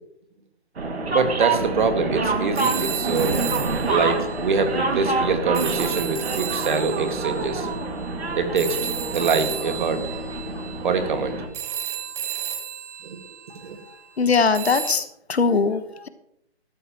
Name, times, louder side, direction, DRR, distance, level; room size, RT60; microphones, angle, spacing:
sound 1, 0.8-11.5, right 3 dB, 70° right, 2.2 m, -27 dB
voice 1, 1.1-3.4 3.9-7.7 8.3-8.8 9.1-10.0 10.8-11.4 13.0-13.2 13.6-13.8, right 4 dB, 45° right, 7 dB, 1.9 m, -24 dB
sound 2, 2.6-5.0 5.5-14.0 14.5-14.9, right 9 dB, 15° right, 0.7 m, -33 dB
voice 2, 14.2-16.1, left 5 dB, 70° left, 11 dB, 1.3 m, -21 dB
16.0 x 12.5 x 3.0 m, 0.76 s
figure-of-eight pair, 150°, 33 cm